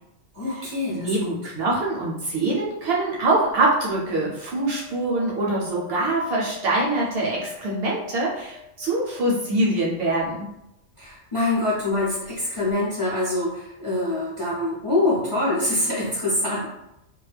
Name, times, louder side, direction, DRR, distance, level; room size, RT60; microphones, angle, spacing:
voice 1, 0.3-1.4 11.0-16.6, left 2 dB, 35° left, -7 dB, 0.5 m, -25 dB
voice 2, 0.9-10.5, right 2 dB, 60° right, -4 dB, 0.7 m, -24 dB
sound 1, 3.5-9.7 12.0-12.1 12.2-12.3, left 10 dB, 65° left, 0.8 m, -45 dB
2.2 x 2.1 x 3.2 m, 0.87 s
omnidirectional pair, 1.3 m